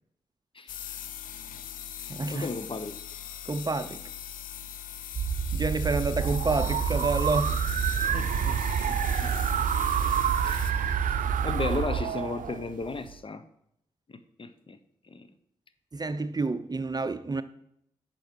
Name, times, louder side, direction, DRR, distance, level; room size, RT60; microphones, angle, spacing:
voice 1, 0.5-1.0 2.0-3.0 8.1-8.6 8.8-9.3 10.4-13.4 14.1-14.8 15.1-15.3, left 3 dB, 40° left, 1.1 m, -36 dB
sound 1, 0.7-10.7, left 9 dB, 80° left, 0.6 m, -40 dB
voice 2, 2.1-2.5 3.5-4.0 5.5-7.6 15.9-17.4, right 3 dB, 30° right, 0.6 m, -29 dB
sound 2, 5.1-12.0, right 6 dB, 45° right, 1.1 m, -30 dB
sound 3, 6.0-13.2, right 10 dB, 70° right, 0.5 m, -30 dB
8.8 x 5.9 x 6.3 m
supercardioid pair, 45°, 14 cm